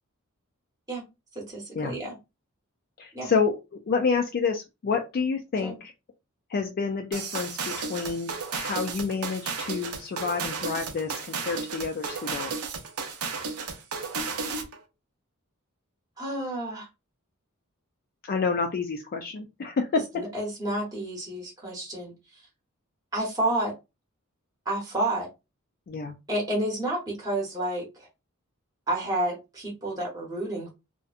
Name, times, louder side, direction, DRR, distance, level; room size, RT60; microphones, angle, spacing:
voice 1, 1.3-2.1 3.1-3.3 5.6-5.8 16.2-16.9 20.1-22.4 23.1-23.7 24.6-25.3 26.3-28.1 28.9-30.7, right 1 dB, 15° right, -2 dB, 0.8 m, -30 dB
voice 2, 3.0-5.9 6.5-12.5 18.3-20.0 25.9-26.1, left 5 dB, 45° left, 4 dB, 0.3 m, -29 dB
sound 1, 7.1-14.8, right 5 dB, 75° right, 0.5 m, -33 dB
2.6 x 2.1 x 2.4 m, 0.25 s
head